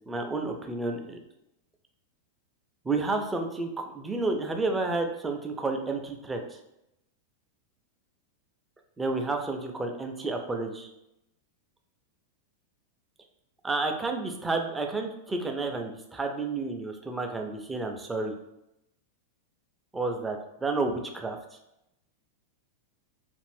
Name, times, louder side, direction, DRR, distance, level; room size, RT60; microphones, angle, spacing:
voice 1, 0.1-1.2 2.8-6.6 9.0-10.9 13.6-18.3 19.9-21.4, right 3 dB, 10° right, 3 dB, 0.4 m, -31 dB
2.5 x 2.4 x 3.3 m, 0.86 s
figure-of-eight pair, 90°, 0 cm